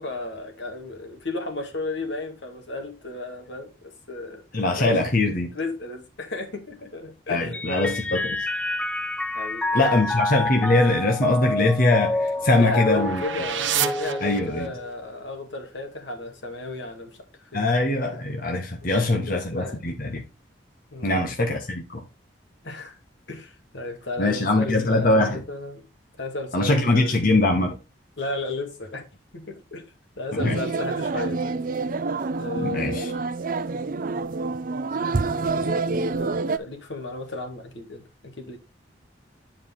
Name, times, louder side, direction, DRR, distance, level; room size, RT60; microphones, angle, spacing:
voice 1, 0.0-4.4 4.8-4.9 5.5-8.2 9.3-9.8 12.6-17.8 18.8-19.8 20.9-21.3 22.6-23.0 23.3-25.8 26.2-27.4 28.2-29.0 29.3-29.8 30.2-31.6 32.4-33.3 35.0-38.6, left 2 dB, 80° left, 2.2 m, -34 dB
voice 2, 4.5-5.5 7.3-8.3 9.7-13.2 14.2-14.7 17.5-20.2 21.0-22.0 24.2-25.4 26.5-27.8 30.4-30.6 32.6-33.1, left 2 dB, 50° left, 1.3 m, -22 dB
Mallet percussion, 7.5-15.3, left 2 dB, 5° left, 0.4 m, -28 dB
sound 1, 11.5-14.9, right 9 dB, 90° right, 0.9 m, -31 dB
sound 2, 30.4-36.6, right 3 dB, 50° right, 0.5 m, -27 dB
9.4 x 4.9 x 3.8 m
head